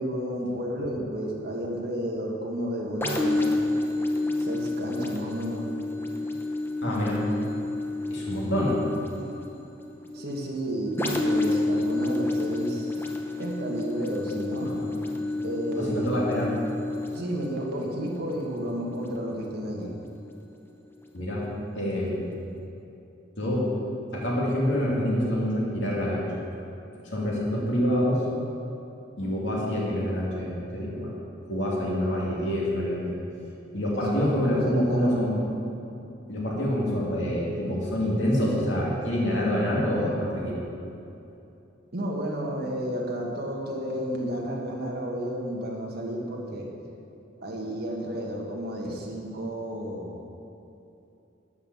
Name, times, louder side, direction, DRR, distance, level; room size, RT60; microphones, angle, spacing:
voice 1, 0.0-3.6 4.4-5.7 7.7-7.8 10.1-13.1 13.4-14.7 15.4-16.2 16.5-16.6 17.1-19.9 25.8-25.9 33.9-35.2 41.9-46.7 47.4-50.2, equal, 55° right, -2 dB, 1.7 m, -32 dB
sound 1, 3.0-20.5 21.1-21.2, left 2 dB, 10° left, 0.8 m, -30 dB
voice 2, 6.8-7.2 8.1-8.8 14.6-15.0 15.8-16.5 21.1-21.4 21.8-22.3 23.4-23.7 24.1-26.3 27.1-28.2 29.2-31.1 31.5-33.1 33.7-35.3 36.3-40.6, equal, 65° left, -4 dB, 2.7 m, -26 dB
11.5 x 5.7 x 7.3 m, 2.8 s
head